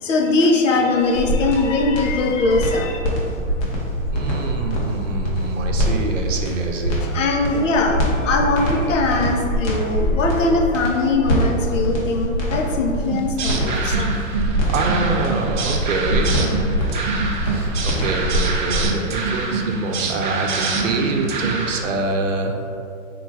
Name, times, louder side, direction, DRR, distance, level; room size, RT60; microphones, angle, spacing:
voice 1, 0.0-3.0 7.0-14.2, left 3 dB, 65° left, 1 dB, 0.8 m, -21 dB
sound 1, 1.0-18.9, equal, 25° left, 0.8 m, -23 dB
voice 2, 4.1-7.0 14.7-16.4 17.4-22.7, right 3 dB, 65° right, 2 dB, 0.7 m, -25 dB
sound 2, 13.1-21.8, right 4 dB, 40° right, 0.4 m, -25 dB
3.8 x 2.4 x 4.6 m, 2.5 s
hypercardioid pair, 145°, 40 cm